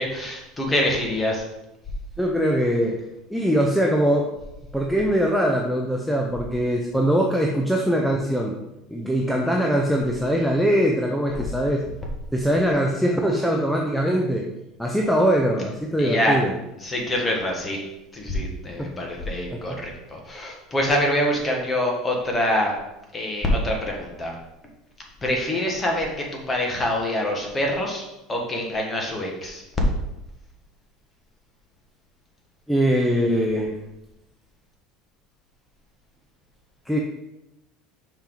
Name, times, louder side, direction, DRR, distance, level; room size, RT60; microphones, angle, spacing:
voice 1, 0.0-1.5 16.0-16.4 16.8-17.8 18.1-22.7 23.1-24.3 25.2-29.6, left 1 dB, 20° left, 0 dB, 1.5 m, -25 dB
voice 2, 2.2-3.0 3.3-4.3 4.7-8.6 8.9-11.9 12.3-14.5 14.8-16.5 18.8-18.9 19.5-19.8 32.7-33.8 36.9-37.0, equal, ahead, 0 dB, 0.6 m, -22 dB
5.7 x 4.3 x 3.9 m, 0.92 s
supercardioid pair, 125°, 0 cm